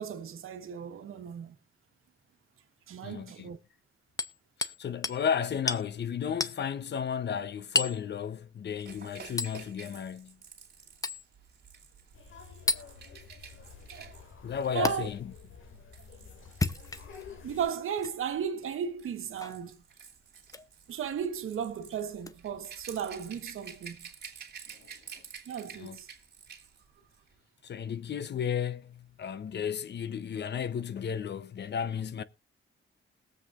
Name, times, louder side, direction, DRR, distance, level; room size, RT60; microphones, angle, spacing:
voice 1, 0.0-1.5 2.9-3.6 13.9-14.1 14.7-15.1 17.4-19.8 20.9-24.1 25.5-26.1, right 8 dB, 85° right, 1.3 m, -35 dB
voice 2, 3.0-3.5 4.6-10.4 14.4-15.3 25.8-26.0 27.6-32.2, left 7 dB, 55° left, 0.7 m, -33 dB
Hammer, 4.2-4.8 5.0-5.2 5.7-5.9 6.4-6.6 7.8-8.0 9.4-9.6 11.0-11.2 12.7-12.9 14.9-15.0 16.5-17.2 18.0-18.1 19.4-19.6 20.5-20.7 22.2-22.3, left 3 dB, 15° left, 0.7 m, -31 dB
Rattle / Rattle (instrument), 8.8-17.8 18.7-26.8 27.1-27.3, right 6 dB, 55° right, 2.6 m, -50 dB
sound 1, 12.1-17.7, left 5 dB, 75° left, 2.3 m, -50 dB
21.0 x 7.7 x 2.5 m
cardioid pair, 115°, 21 cm